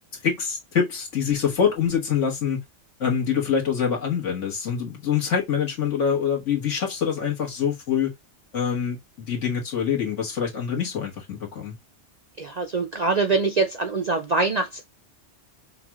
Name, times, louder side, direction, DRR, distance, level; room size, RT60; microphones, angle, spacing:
voice 1, 0.2-2.6 3.0-8.1 8.5-11.7, left 7 dB, 75° left, 1.7 m, -25 dB
voice 2, 12.4-14.9, right 3 dB, 50° right, 0.5 m, -24 dB
5.7 x 2.4 x 2.9 m
omnidirectional pair, 1.3 m